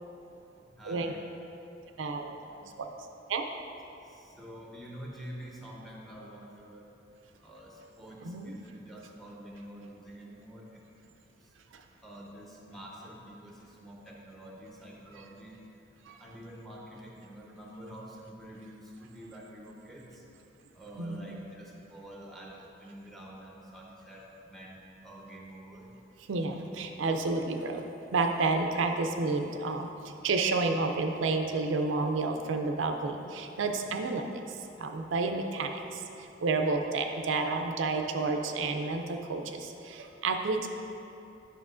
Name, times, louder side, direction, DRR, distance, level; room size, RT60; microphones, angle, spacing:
voice 1, 0.8-1.2 2.6-2.7 4.1-6.8 7.4-10.7 12.0-15.6 16.2-20.2 20.7-25.9, equal, ahead, -3 dB, 0.7 m, -47 dB
voice 2, 2.0-2.9 3.3-3.5 8.2-8.5 11.7-11.8 16.1-16.2 21.0-21.4 26.3-27.8 28.1-34.2 34.8-40.7, right 3 dB, 70° right, 5 dB, 0.4 m, -30 dB
9.4 x 5.6 x 2.5 m, 2.8 s
head